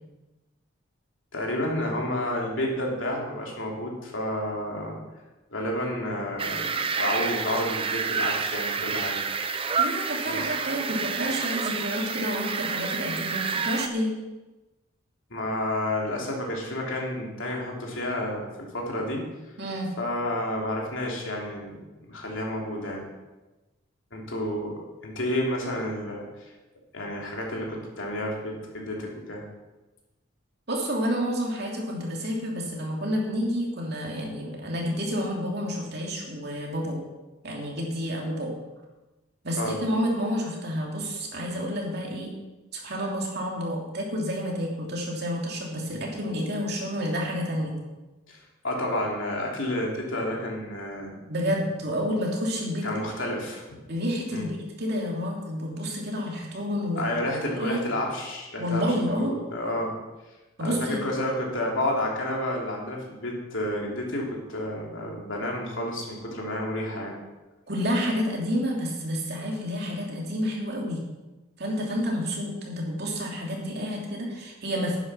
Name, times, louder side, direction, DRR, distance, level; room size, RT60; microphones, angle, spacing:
voice 1, 1.3-5.0 5.5-6.7 7.0-9.2 10.2-10.5 15.3-19.2 20.0-21.8 22.1-23.1 24.1-26.3 26.9-29.4 39.5-39.8 48.3-48.4 48.6-51.2 52.8-53.6 54.3-54.5 56.9-59.9 60.6-67.2, left 1 dB, 70° left, -1 dB, 3.1 m, -30 dB
sound 1, 6.4-13.9, right 5 dB, 25° right, 0.6 m, -29 dB
voice 2, 9.8-14.1 19.6-19.9 30.7-37.0 37.4-38.5 39.4-42.3 42.7-47.7 51.3-52.9 53.9-57.0 57.5-57.8 58.6-59.3 60.6-61.0 67.7-71.0 71.6-75.0, equal, 50° right, -2 dB, 2.9 m, -29 dB
10.5 x 9.6 x 6.1 m, 1.1 s
head